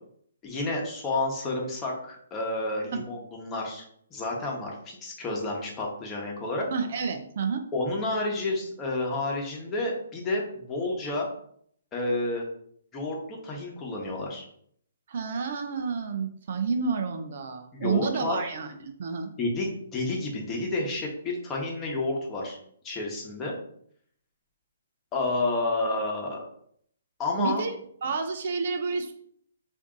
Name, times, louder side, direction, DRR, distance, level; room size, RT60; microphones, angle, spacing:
voice 1, 0.4-3.8 4.1-6.7 7.7-11.3 11.9-12.4 12.9-14.5 17.7-18.5 19.4-22.6 22.8-23.6 25.1-26.4 27.2-27.6, left 2 dB, 20° left, -1 dB, 1.0 m, -30 dB
voice 2, 6.7-7.6 15.1-19.3 27.4-29.1, right 5 dB, 55° right, 6 dB, 0.5 m, -30 dB
3.5 x 2.6 x 3.8 m, 0.65 s
hypercardioid pair, 140°, 0 cm